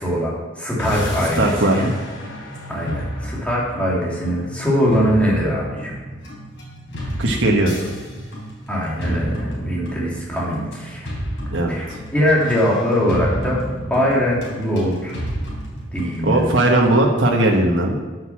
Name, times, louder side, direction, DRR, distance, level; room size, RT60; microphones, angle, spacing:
voice 1, 0.0-1.9 2.7-5.9 8.7-11.1 11.7-13.6 13.9-15.2 15.9-16.6, equal, 5° left, -5 dB, 2.8 m, -22 dB
sound 1, 0.8-17.2, equal, 75° left, 3.9 m, -31 dB
voice 2, 1.4-1.8 7.2-7.8 11.5-12.0 16.2-18.0, right 1 dB, 85° right, 0 dB, 1.3 m, -18 dB
9.2 x 6.6 x 7.3 m, 1.3 s
head